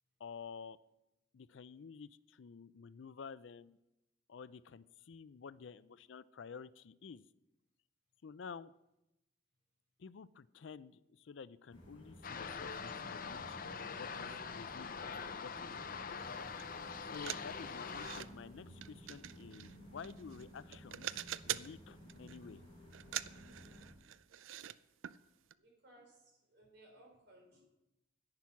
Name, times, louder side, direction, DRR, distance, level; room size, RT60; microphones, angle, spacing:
voice 1, 0.2-0.8 1.3-3.8 4.3-7.2 8.2-8.7 10.0-16.2 17.1-21.1 21.4-22.6, left 6 dB, 70° left, 18 dB, 0.4 m, -51 dB
sound 1, 11.7-23.9, equal, 25° left, 4.8 m, -55 dB
sound 2, 12.2-18.2, left 5 dB, 45° left, 0.8 m, -44 dB
sound 3, 16.6-16.7 17.0-18.3 18.8-20.4 20.7-21.8 22.1-22.5 22.9-24.8 25.0-25.2 25.5-25.6, right 12 dB, 85° right, 0.4 m, -44 dB
voice 2, 25.5-27.6, right 1 dB, 60° right, -1 dB, 4.4 m, -62 dB
10.5 x 9.8 x 5.9 m, 0.90 s
head